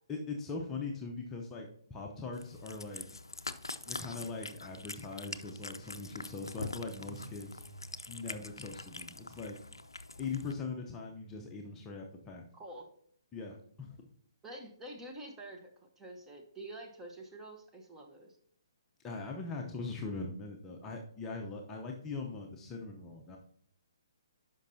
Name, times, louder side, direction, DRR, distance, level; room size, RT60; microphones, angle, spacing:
voice 1, 0.1-3.1 3.9-7.5 8.1-9.6 10.2-12.4 13.3-14.0 19.0-23.4, left 4 dB, 15° left, 0 dB, 0.7 m, -41 dB
Cat, 2.3-10.5, left 3 dB, 80° left, 0.4 m, -45 dB
sound 1, 4.6-10.1, right 4 dB, 40° right, 0.9 m, -57 dB
voice 2, 12.5-12.9 14.4-18.4, right 1 dB, 10° right, 1 dB, 1.0 m, -47 dB
11.5 x 5.3 x 2.7 m, 0.64 s
figure-of-eight pair, 135°, 2 cm